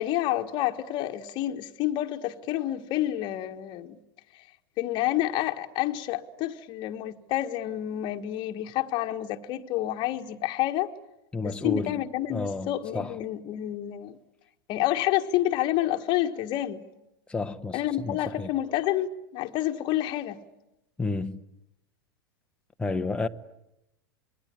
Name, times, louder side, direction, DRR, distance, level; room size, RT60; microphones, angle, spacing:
voice 1, 0.0-4.0 4.3-4.4 4.8-10.9 11.4-14.2 14.7-16.8 17.7-20.4, left 13 dB, 40° left, 1.4 m, -29 dB
voice 2, 11.3-12.0 12.3-13.2 17.3-18.5 21.0-21.4 22.8-23.3, left 3 dB, 10° left, 1.1 m, -31 dB
27.0 x 21.5 x 9.8 m
figure-of-eight pair, 90°, 12 cm